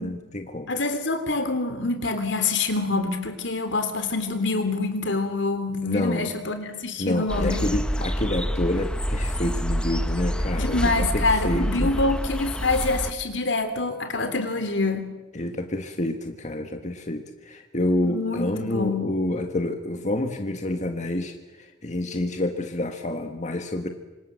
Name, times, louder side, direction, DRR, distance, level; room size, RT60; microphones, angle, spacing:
voice 1, 0.0-0.7 5.8-6.3 7.0-11.9 15.3-23.9, left 1 dB, 40° left, 5 dB, 1.7 m, -28 dB
voice 2, 0.7-7.6 10.6-15.0 18.0-19.1, left 3 dB, 75° left, 8 dB, 3.4 m, -26 dB
sound 1, 7.3-13.1, equal, 5° left, 0.9 m, -27 dB
26.5 x 26.0 x 7.6 m, 1.1 s
head